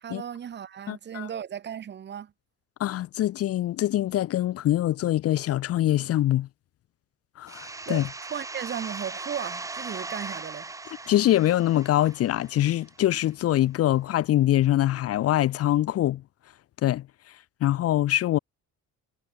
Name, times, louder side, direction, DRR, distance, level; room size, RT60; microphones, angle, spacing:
voice 1, 0.0-2.3 7.9-10.7, right 9 dB, 35° right, 1.5 m, -36 dB
voice 2, 0.9-1.3 2.8-6.5 7.4-8.0 11.1-16.2 16.8-17.0 17.6-18.4, left 13 dB, 50° left, 0.8 m, -24 dB
sound 1, 7.5-13.0, right 3 dB, 10° right, 0.8 m, -39 dB
cardioid pair, 180°, 31 cm